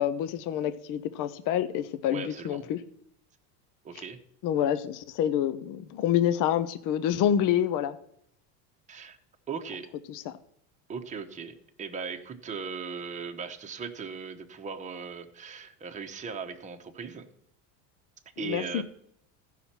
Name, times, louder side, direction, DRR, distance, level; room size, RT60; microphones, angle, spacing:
voice 1, 0.0-2.8 4.4-8.0 10.1-10.3 18.4-18.8, left 10 dB, 50° left, 0.7 m, -27 dB
voice 2, 2.1-2.7 3.8-4.2 8.9-9.2 9.5-9.9 10.9-17.2 18.4-18.8, right 5 dB, 15° right, 1.0 m, -38 dB
15.5 x 5.7 x 4.3 m
cardioid pair, 135°, 41 cm